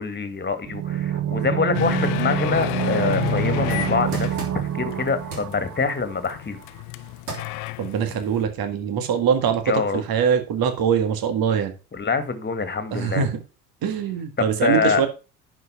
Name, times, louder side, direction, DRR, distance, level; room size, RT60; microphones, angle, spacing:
voice 1, 0.0-6.6 9.7-10.0 11.9-13.2 14.4-15.0, left 4 dB, 25° left, 2.0 m, -25 dB
sound 1, 0.7-6.4 6.6-6.7, right 10 dB, 35° right, 1.2 m, -27 dB
sound 2, 1.7-8.5, left 20 dB, 60° left, 0.8 m, -31 dB
sound 3, 3.2-4.9 5.3-5.6 6.8-7.0 7.3-7.6 8.1-8.2, equal, 80° right, 3.0 m, -34 dB
voice 2, 7.8-11.7 12.9-13.4 13.8-15.1, right 7 dB, 50° right, 1.9 m, -23 dB
11.0 x 4.9 x 5.6 m
hypercardioid pair, 60°, 45 cm